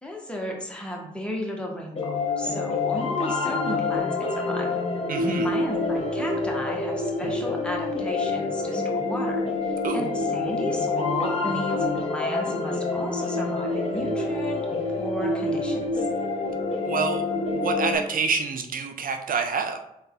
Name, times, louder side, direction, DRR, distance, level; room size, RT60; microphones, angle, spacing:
voice 1, 0.0-4.7 5.4-14.6 14.9-16.1, left 1 dB, 5° left, -1 dB, 1.5 m, -34 dB
sound 1, 2.0-18.0, left 3 dB, 40° left, 1.5 m, -27 dB
voice 2, 5.1-5.5 9.8-10.0 16.8-19.8, right 5 dB, 55° right, 7 dB, 0.6 m, -27 dB
3.9 x 3.5 x 3.9 m, 0.82 s
hypercardioid pair, 40°, 17 cm